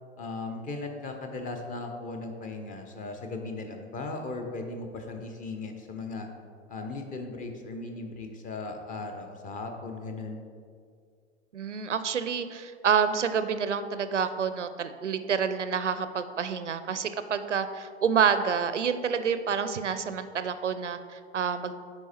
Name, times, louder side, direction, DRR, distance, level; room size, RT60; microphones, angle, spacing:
voice 1, 0.2-6.3 6.7-10.4, left 3 dB, 25° left, 4 dB, 0.9 m, -37 dB
voice 2, 11.5-21.7, right 7 dB, 90° right, 11 dB, 0.5 m, -28 dB
9.7 x 4.5 x 4.3 m, 2.2 s
figure-of-eight pair, 90°, 35 cm